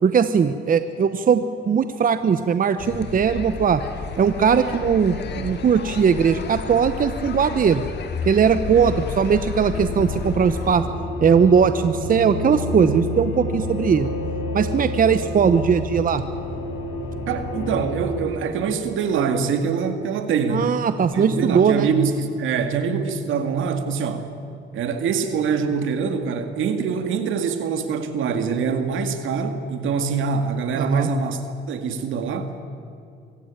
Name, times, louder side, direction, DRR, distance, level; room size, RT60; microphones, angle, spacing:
voice 1, 0.0-3.8 4.2-7.8 8.2-10.8 11.2-14.1 14.5-16.2 20.5-21.9 30.8-31.1, right 6 dB, 45° right, 11 dB, 0.9 m, -19 dB
sound 1, 2.8-10.8, left 6 dB, 60° left, 2.1 m, -32 dB
voice 2, 8.7-9.1 17.3-20.7 21.1-24.3 24.7-32.6, right 6 dB, 80° right, 8 dB, 2.1 m, -24 dB
sound 2, 9.7-18.2, left 1 dB, 80° left, 6.2 m, -29 dB
24.5 x 15.5 x 9.0 m, 2.6 s
cardioid pair, 90°, 20 cm